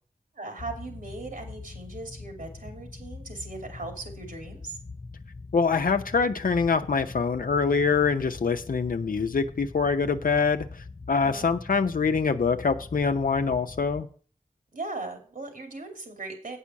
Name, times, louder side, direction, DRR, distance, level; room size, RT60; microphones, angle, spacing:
voice 1, 0.3-4.8 11.2-11.5 14.7-16.6, right 3 dB, 80° right, 4 dB, 2.6 m, -38 dB
sound 1, 0.6-14.0, left 3 dB, 30° left, 0.4 m, -43 dB
voice 2, 5.5-14.1, left 5 dB, 80° left, 7 dB, 0.7 m, -25 dB
8.4 x 5.6 x 7.4 m, 0.42 s
wide cardioid pair, 75°, 14 cm